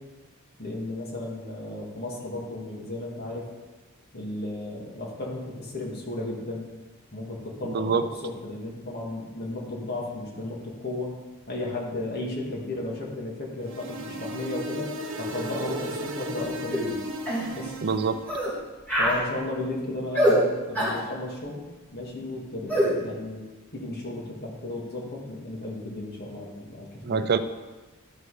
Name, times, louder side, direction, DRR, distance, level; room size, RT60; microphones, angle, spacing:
voice 1, 0.6-3.5 4.1-6.7 7.1-11.2 11.5-14.9 15.2-17.0 17.5-17.8 19.0-21.6 21.9-23.4 23.7-27.3, left 2 dB, 45° left, -2 dB, 2.3 m, -34 dB
voice 2, 7.6-8.0 17.8-18.2 27.0-27.4, right 5 dB, 45° right, 10 dB, 0.5 m, -25 dB
sound 1, 13.6-18.4, right 1 dB, 60° right, 1.0 m, -35 dB
sound 2, 16.7-16.9 17.3-17.5 18.3-18.5 18.9-19.2 20.1-20.4 20.7-21.0 22.7-22.9, equal, 10° left, 3.1 m, -23 dB
12.5 x 6.4 x 5.0 m, 1.2 s
head